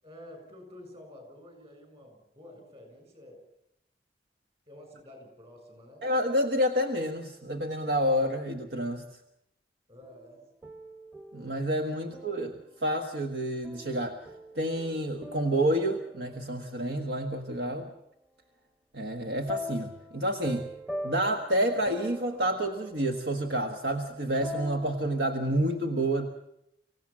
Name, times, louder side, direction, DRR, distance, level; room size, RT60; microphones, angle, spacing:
voice 1, 0.0-3.4 4.7-6.1 9.9-10.4, left 1 dB, 35° right, 5 dB, 7.4 m, -50 dB
voice 2, 6.0-9.0 11.3-14.2 14.5-17.9 18.9-20.7 21.0-26.3, right 1 dB, 70° right, 5 dB, 1.5 m, -29 dB
sound 1, 10.0-12.7 13.6-17.0 19.5-25.5, left 1 dB, 10° right, 1.0 m, -43 dB
25.5 x 16.5 x 7.5 m, 0.79 s
head